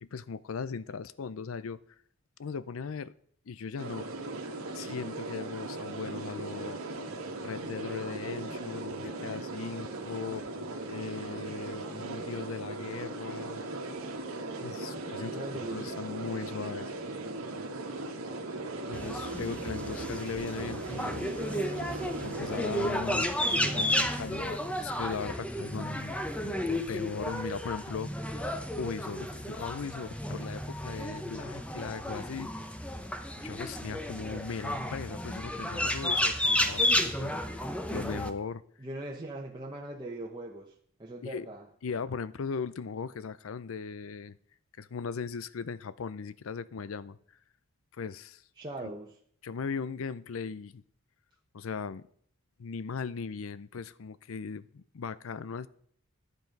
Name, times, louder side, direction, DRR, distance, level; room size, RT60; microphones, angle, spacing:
voice 1, 0.0-1.8 2.4-3.1 3.5-4.1 4.7-6.8 7.4-10.5 10.9-13.6 14.6-15.4 15.7-16.9 18.9-21.3 21.9-26.2 26.4-28.4 28.8-32.7 33.4-38.6 41.2-41.5 41.8-44.4 44.8-47.2 47.9-48.4 49.4-50.8 51.5-52.1 52.6-55.7, left 5 dB, 70° left, 0.5 m, -38 dB
sound 1, 3.8-22.9, right 2 dB, 90° right, 1.7 m, -38 dB
voice 2, 15.3-15.9 16.5-17.0 38.8-40.7 41.0-41.7 48.6-49.2, right 1 dB, 20° right, 0.9 m, -41 dB
sound 2, 18.9-38.3, left 1 dB, 5° left, 0.8 m, -32 dB
11.5 x 8.0 x 5.2 m
head